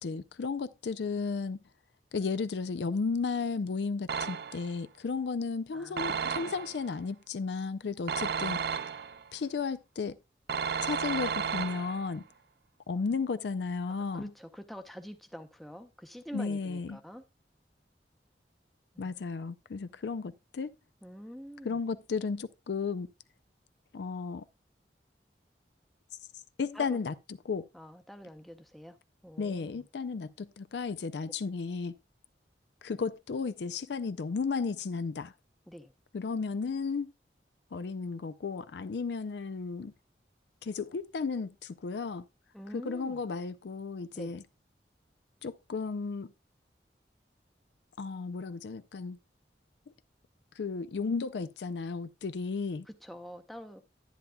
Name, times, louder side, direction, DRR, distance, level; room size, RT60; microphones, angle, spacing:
voice 1, 0.0-1.6 2.1-8.6 9.3-10.2 10.8-12.2 12.9-14.2 16.3-17.0 19.0-20.7 21.6-23.1 23.9-24.4 26.6-27.7 29.4-32.0 32.8-35.3 36.1-37.1 37.7-39.9 40.6-42.3 42.7-44.4 45.4-46.3 48.0-49.2 50.6-52.9, left 4 dB, 75° left, 0.4 m, -34 dB
sound 1, 4.1-4.8 6.0-6.9 8.1-9.3 10.5-12.1, right 6 dB, 65° right, 0.4 m, -33 dB
voice 2, 5.7-6.5 13.9-17.2 18.9-19.1 21.0-21.8 26.7-27.0 27.7-29.0 29.2-29.8 35.7-35.9 42.5-43.2 44.1-44.3 52.9-53.8, equal, ahead, 0.6 m, -46 dB
10.5 x 10.5 x 2.3 m
head